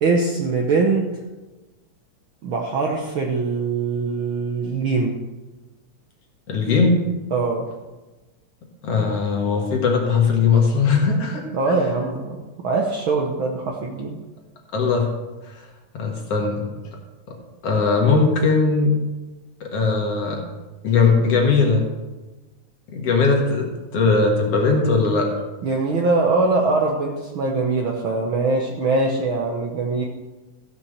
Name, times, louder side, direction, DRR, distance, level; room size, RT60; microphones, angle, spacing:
voice 1, 0.0-1.1 2.4-5.2 7.3-7.7 11.5-14.2 25.6-30.0, right 3 dB, 60° right, 0 dB, 1.4 m, -22 dB
voice 2, 6.5-7.1 8.8-11.8 14.7-15.1 15.5-15.6 15.9-16.6 17.6-18.9 19.6-20.4 20.8-21.8 22.9-25.3, left 4 dB, 55° left, 1 dB, 2.5 m, -19 dB
14.0 x 5.9 x 6.5 m, 1.2 s
omnidirectional pair, 3.4 m